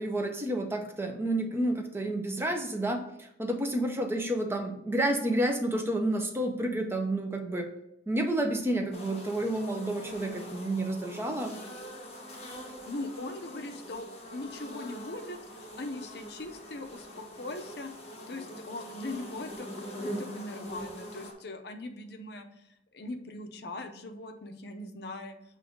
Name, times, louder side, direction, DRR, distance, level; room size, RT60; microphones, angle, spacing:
voice 1, 0.0-7.7 8.1-11.5, right 1 dB, 15° right, 4 dB, 0.5 m, -30 dB
sound 1, 8.9-21.3, equal, 35° left, 1.2 m, -43 dB
voice 2, 12.9-17.9 18.3-25.4, left 2 dB, 60° left, 6 dB, 0.6 m, -40 dB
7.3 x 2.6 x 5.0 m, 0.81 s
head